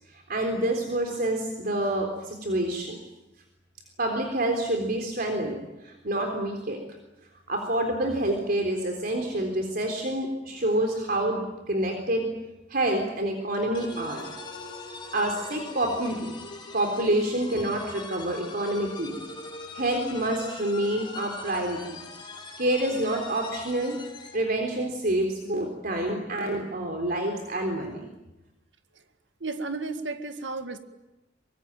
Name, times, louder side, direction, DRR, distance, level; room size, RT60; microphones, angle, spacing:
voice 1, 0.1-3.0 4.0-6.8 7.5-12.3 12.7-14.3 15.1-16.3 16.7-19.2 19.7-22.0 22.6-24.0 24.3-28.1, right 1 dB, 55° right, 3 dB, 3.8 m, -27 dB
sound 1, 13.7-24.5, left 3 dB, 25° left, 3.8 m, -41 dB
voice 2, 29.4-30.8, right 3 dB, 85° right, 8 dB, 1.9 m, -33 dB
25.0 x 22.5 x 9.1 m, 0.99 s
head